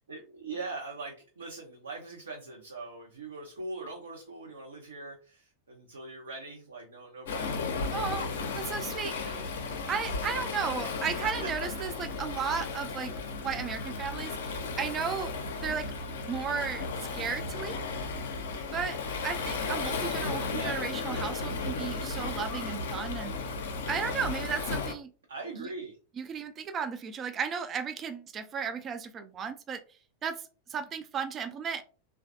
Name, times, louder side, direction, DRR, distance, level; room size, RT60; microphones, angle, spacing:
voice 1, 0.1-10.9 11.2-11.3 20.5-20.8 25.3-26.0, right 3 dB, 70° right, -1 dB, 0.6 m, -42 dB
Waves surf, 7.3-24.9, left 4 dB, 60° left, 0.5 m, -34 dB
voice 2, 7.9-8.3 8.6-9.4 9.9-13.1 13.4-15.3 15.6-15.9 16.2-16.9 17.1-17.8 18.7-19.0 19.2-23.3 23.9-25.1 25.6-25.7 26.2-29.8 30.2-30.4 30.7-31.8, right 6 dB, 25° right, 9 dB, 0.3 m, -34 dB
3.1 x 2.3 x 2.5 m, 0.36 s
figure-of-eight pair, 90°, 0 cm